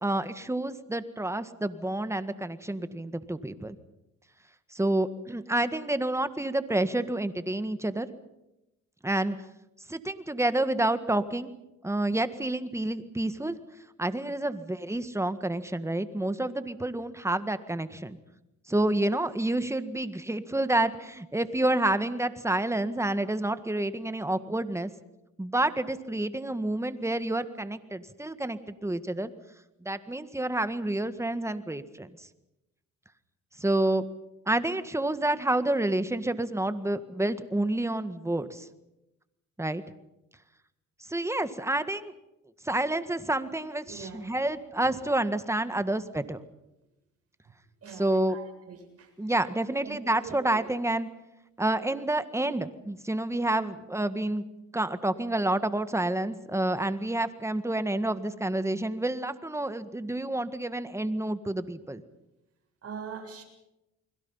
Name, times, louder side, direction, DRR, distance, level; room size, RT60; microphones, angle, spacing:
voice 1, 0.0-3.8 4.7-8.1 9.0-9.3 9.9-11.5 11.8-13.6 14.0-18.2 18.7-24.9 25.4-29.3 29.8-32.3 33.6-34.0 34.5-38.7 39.6-39.8 41.1-42.1 42.6-46.4 48.0-48.4 49.2-51.1 51.6-54.4 54.7-62.0, right 1 dB, 10° right, 11 dB, 1.7 m, -29 dB
voice 2, 43.9-44.4 44.8-45.0 47.8-49.3 49.7-50.7 62.8-63.4, right 6 dB, 50° right, 3 dB, 7.5 m, -43 dB
30.0 x 21.5 x 5.7 m, 0.92 s
cardioid pair, 90°, 30 cm